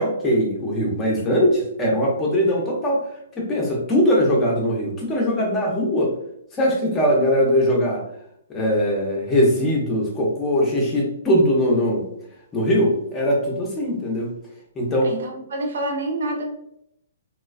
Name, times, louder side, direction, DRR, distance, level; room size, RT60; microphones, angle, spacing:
voice 1, 0.0-3.1 3.4-6.1 6.5-8.0 8.5-12.1 12.5-14.3 14.8-15.1, equal, 15° left, -2 dB, 0.6 m, -21 dB
voice 2, 15.0-16.4, right 1 dB, 70° right, 2 dB, 0.6 m, -27 dB
2.4 x 2.2 x 2.4 m, 0.75 s
hypercardioid pair, 150°, 0 cm